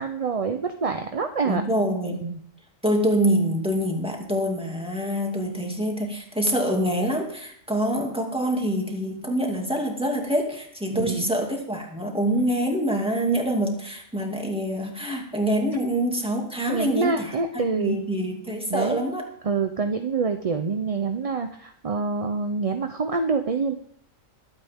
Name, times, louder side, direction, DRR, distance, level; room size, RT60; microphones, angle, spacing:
voice 1, 0.0-1.6 2.1-2.4 10.9-11.3 16.7-18.0 18.7-19.0 19.4-23.7, right 4 dB, 35° right, 6 dB, 0.6 m, -26 dB
voice 2, 1.5-2.2 2.8-17.3 17.5-19.3, equal, 5° right, 1 dB, 2.4 m, -25 dB
22.0 x 8.7 x 3.6 m, 0.63 s
omnidirectional pair, 1.4 m